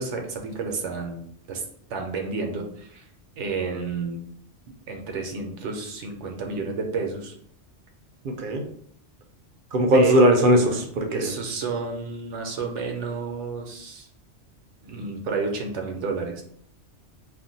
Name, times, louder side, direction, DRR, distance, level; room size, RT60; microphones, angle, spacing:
voice 1, 0.0-1.6 1.9-3.0 3.4-4.2 4.9-7.3 9.9-10.2 11.1-14.1 14.8-16.4, right 4 dB, 80° right, 2 dB, 1.0 m, -30 dB
voice 2, 8.2-8.6 9.7-11.3, right 1 dB, 60° right, 3 dB, 0.6 m, -19 dB
2.6 x 2.1 x 3.8 m, 0.66 s
omnidirectional pair, 1.2 m